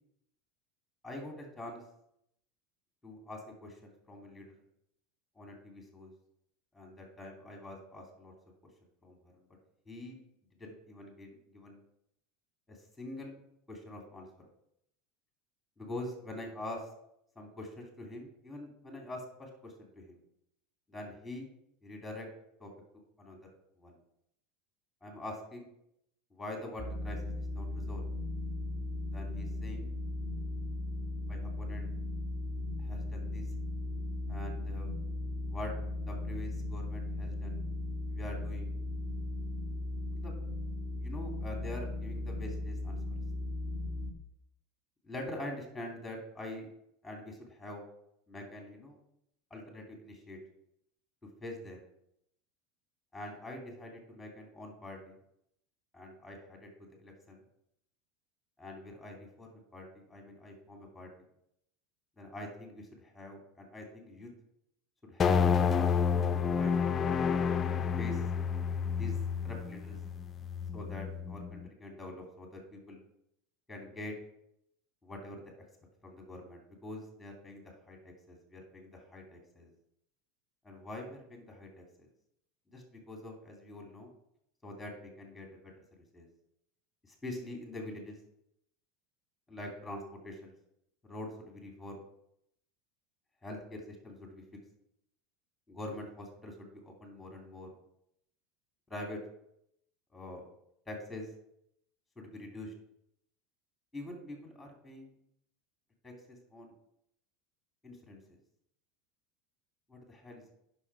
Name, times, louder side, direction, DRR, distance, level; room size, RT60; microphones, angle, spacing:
voice 1, 1.0-1.8 3.0-4.6 5.3-6.1 6.7-8.3 9.0-9.4 9.9-10.2 10.6-11.8 12.7-13.4 13.7-14.3 15.8-16.9 17.3-20.2 20.9-21.5 21.8-22.3 22.6-23.4 23.8-24.0 25.0-25.7 26.3-28.1 29.1-29.9 31.3-31.9 32.8-33.5 34.3-34.9 35.5-35.7 36.1-37.6 38.1-38.7 40.1-40.4 41.0-43.0 45.0-46.7 47.0-47.8 48.3-49.0 49.5-50.4 51.4-51.8 53.1-55.2 55.9-57.4 58.6-61.1 62.2-64.3 65.0-65.5 65.8-66.8 68.0-68.2 69.0-69.2 69.4-70.0 70.7-73.0 73.7-74.1 75.0-75.5 76.0-79.7 80.6-82.1 82.7-84.1 84.6-85.7 86.0-86.3 87.1-88.2 89.5-90.5 91.0-92.0 93.4-94.4 95.7-97.7 98.9-99.2 100.1-100.5 100.9-101.3 102.2-102.7 103.9-105.1 106.0-106.7 107.8-108.2 109.9-110.5, left 1 dB, 5° left, 2 dB, 3.1 m, -45 dB
sound 1, 26.8-44.1, left 2 dB, 25° right, 2.7 m, -37 dB
sound 2, 65.2-71.7, left 6 dB, 30° left, 0.5 m, -30 dB
9.8 x 6.0 x 4.9 m, 0.76 s
supercardioid pair, 105°, 0 cm